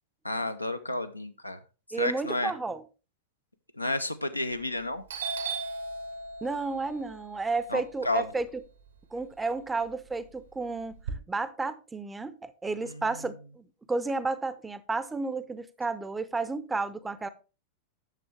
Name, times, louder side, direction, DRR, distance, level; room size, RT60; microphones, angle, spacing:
voice 1, 0.2-1.6 2.0-2.5 3.8-5.0 7.7-8.3 12.9-13.0, left 1 dB, 85° left, 0.7 m, -31 dB
voice 2, 1.9-2.8 6.4-8.6 9.1-11.0 11.3-17.3, right 3 dB, 10° right, 0.6 m, -32 dB
Doorbell, 4.5-4.8 5.1-9.2 9.6-11.1, right 4 dB, 65° right, 1.3 m, -38 dB
9.1 x 6.9 x 3.2 m
figure-of-eight pair, 90°, 0 cm